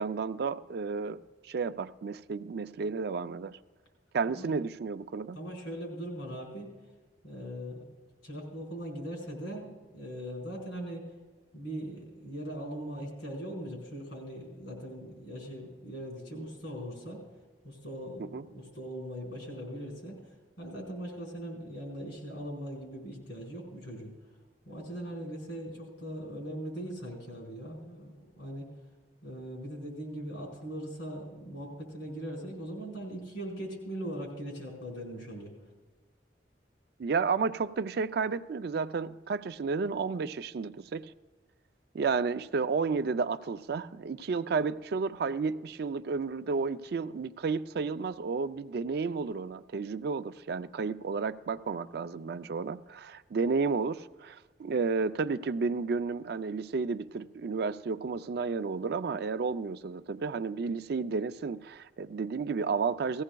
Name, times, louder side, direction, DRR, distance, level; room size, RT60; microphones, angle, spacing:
voice 1, 0.0-3.6 4.1-5.4 18.2-18.4 37.0-41.1 41.9-63.2, right 4 dB, 60° right, 0.4 m, -32 dB
voice 2, 5.3-6.7 7.2-7.9 8.2-11.0 11.5-17.2 17.6-20.2 20.6-24.1 24.6-28.7 29.2-35.5, equal, 85° left, 4.5 m, -40 dB
18.5 x 15.5 x 2.3 m
head